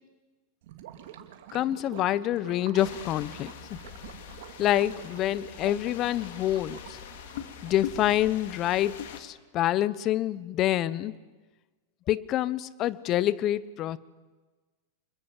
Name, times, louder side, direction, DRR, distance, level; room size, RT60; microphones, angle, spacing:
Gurgling / Liquid, 0.6-8.3, right 10 dB, 65° right, 2.5 m, -47 dB
voice 1, 1.5-3.8 4.6-7.0 7.6-11.1 12.1-14.0, left 13 dB, 40° left, 19 dB, 1.0 m, -27 dB
sound 1, 2.8-9.2, left 10 dB, 70° left, 2.4 m, -42 dB
26.0 x 21.5 x 7.6 m, 1.3 s
hypercardioid pair, 115°, 0 cm